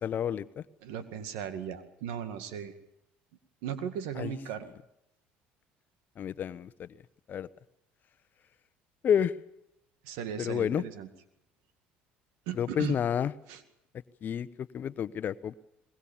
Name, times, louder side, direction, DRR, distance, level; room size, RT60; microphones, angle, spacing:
voice 1, 0.0-0.6 4.1-4.4 6.2-6.9 7.3-7.5 9.0-9.3 10.4-10.8 12.5-13.3 14.2-15.5, left 8 dB, 50° left, 15 dB, 1.0 m, -30 dB
voice 2, 0.8-2.7 3.6-4.7 10.0-11.1 12.5-13.0 13.5-13.6, right 9 dB, 80° right, 10 dB, 2.1 m, -37 dB
22.5 x 21.0 x 7.2 m, 0.84 s
supercardioid pair, 80°, 4 cm